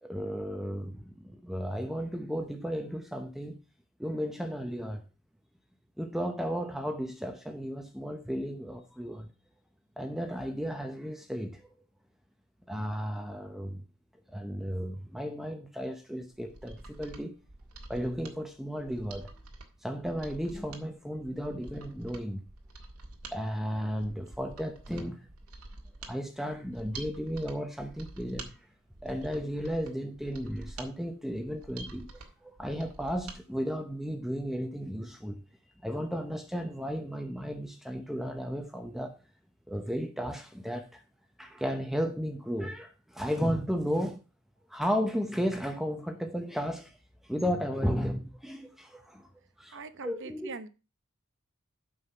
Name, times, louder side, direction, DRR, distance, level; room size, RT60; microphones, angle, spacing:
voice 1, 0.0-3.6 4.0-5.0 6.0-9.3 10.0-11.8 12.7-13.8 14.3-17.3 17.9-19.3 19.8-22.4 23.3-25.2 26.1-28.5 29.0-35.4 35.8-39.2 39.7-41.0 41.4-44.2 44.7-47.0 47.2-49.3 49.6-50.6, equal, ahead, 0.7 m, -34 dB
Mechanisms, 16.3-33.4 33.7-33.8, right 2 dB, 85° right, 1.8 m, -48 dB
voice 2, 49.7-50.7, right 3 dB, 55° right, 0.9 m, -42 dB
8.4 x 5.7 x 5.6 m
head